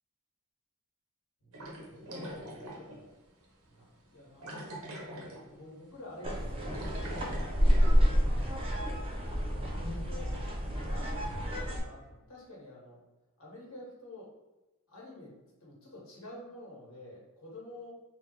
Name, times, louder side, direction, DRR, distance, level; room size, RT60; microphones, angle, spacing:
sound 1, 1.5-3.0 3.4-3.5 4.4-5.6 5.9-6.1 6.4-8.0, equal, 80° right, 0.9 m, -43 dB
voice 1, 1.9-3.1 3.7-3.9 4.1-7.5 8.2-9.1 9.6-10.3 10.8-13.0 13.4-14.3 14.9-17.9, left 1 dB, 70° left, -4 dB, 1.4 m, -49 dB
sound 2, 6.2-11.8, equal, 25° right, 0.7 m, -29 dB
3.5 x 2.4 x 4.2 m, 1.1 s
head